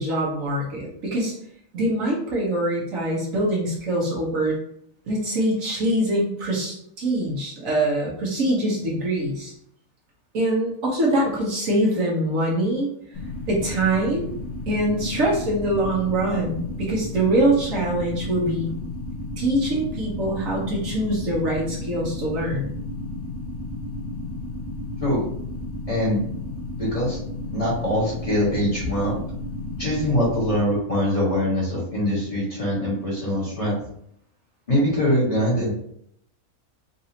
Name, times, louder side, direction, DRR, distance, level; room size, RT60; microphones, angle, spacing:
voice 1, 0.0-1.3 1.7-4.6 5.1-9.5 10.3-12.9 13.5-14.3 14.7-18.7 19.4-22.7, right 1 dB, 70° right, -5 dB, 1.5 m, -24 dB
sound 1, 13.1-30.6, left 2 dB, 60° left, 0.9 m, -33 dB
voice 2, 25.9-26.2 26.8-27.2 27.5-29.2 29.8-33.8 34.7-35.7, equal, 25° left, -8 dB, 1.6 m, -23 dB
4.0 x 2.7 x 2.8 m, 0.70 s
omnidirectional pair, 1.5 m